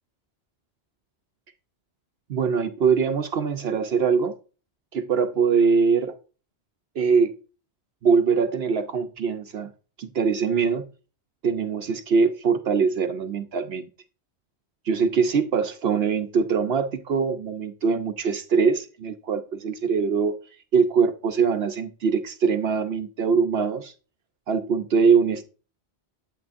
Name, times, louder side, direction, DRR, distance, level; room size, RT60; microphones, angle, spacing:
voice 1, 2.3-4.3 4.9-6.1 7.0-7.4 8.0-9.7 10.0-10.8 11.4-13.9 14.9-20.4 20.7-23.9 24.5-25.4, right 5 dB, 70° right, 0.9 m, -22 dB
11.0 x 7.5 x 2.6 m
omnidirectional pair, 1.1 m